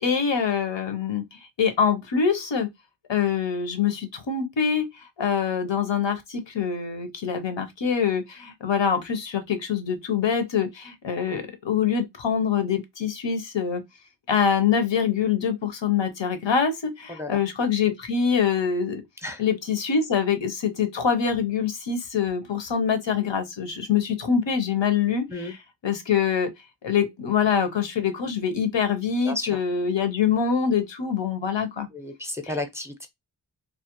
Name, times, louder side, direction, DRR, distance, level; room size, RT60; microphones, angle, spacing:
voice 1, 0.0-2.7 3.1-4.9 5.2-13.8 14.3-19.0 19.4-25.6 25.8-26.5 26.8-31.9, left 7 dB, 85° left, 0.7 m, -24 dB
voice 2, 17.1-17.4 19.2-19.4 25.3-25.5 29.2-29.6 31.9-33.1, left 2 dB, 5° right, 0.5 m, -33 dB
2.3 x 2.0 x 2.8 m
wide cardioid pair, 40°, 43 cm